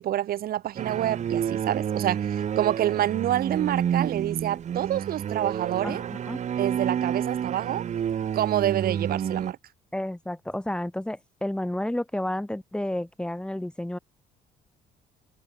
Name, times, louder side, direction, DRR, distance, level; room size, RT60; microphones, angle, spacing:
voice 1, 0.0-6.0 6.6-7.8 8.3-9.6, right 12 dB, 60° right, 1.5 m, -27 dB
sound 1, 0.8-9.5, right 9 dB, 45° right, 1.3 m, -29 dB
voice 2, 5.8-6.4 9.9-14.0, left 1 dB, 5° left, 4.5 m, -31 dB
cardioid pair, 110°, 17 cm